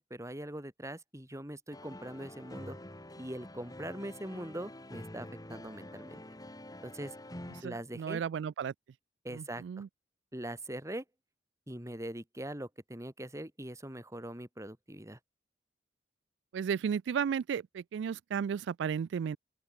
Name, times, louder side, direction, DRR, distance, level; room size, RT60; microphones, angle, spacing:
voice 1, 0.0-2.8 3.2-6.2 6.8-7.1 7.6-8.2 9.2-9.8 10.3-11.0 11.7-15.2, right 1 dB, 15° right, 3.2 m, -42 dB
sound 1, 1.7-7.6, left 1 dB, 20° left, 4.7 m, -47 dB
voice 2, 7.6-8.7 9.3-9.9 16.5-19.4, right 7 dB, 70° right, 0.3 m, -34 dB
open air
head